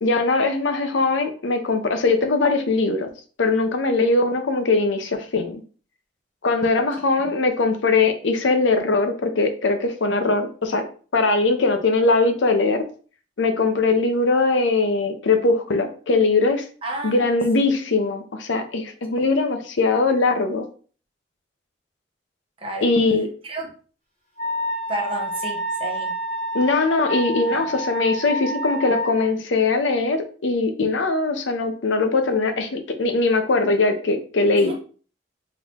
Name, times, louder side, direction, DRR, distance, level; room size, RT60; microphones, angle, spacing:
voice 1, 0.0-3.1 3.4-5.6 6.4-10.8 11.1-12.8 13.4-16.6 17.0-20.7 22.8-23.3 26.5-34.7, left 3 dB, 80° left, 7 dB, 0.7 m, -21 dB
voice 2, 16.8-17.3 19.2-19.3 22.6-22.9 23.4-23.7 24.9-26.1 27.5-27.7 34.6-34.7, right 1 dB, 30° right, 0 dB, 1.0 m, -31 dB
Wind instrument woodwind instrument, 24.4-29.3, right 1 dB, 35° left, 1.7 m, -28 dB
3.8 x 2.9 x 3.5 m, 0.41 s
head